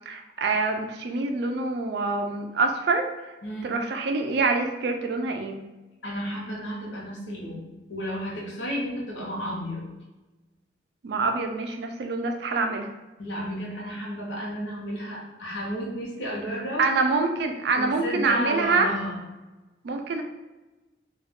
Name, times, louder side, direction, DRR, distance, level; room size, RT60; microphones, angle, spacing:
voice 1, 0.1-3.1 3.6-5.6 11.0-12.9 16.8-18.9 19.8-20.2, right 3 dB, 65° right, 4 dB, 0.3 m, -25 dB
voice 2, 6.0-9.9 13.2-17.1 17.7-19.2, equal, 85° left, -3 dB, 0.8 m, -32 dB
2.3 x 2.3 x 3.5 m, 1.1 s
head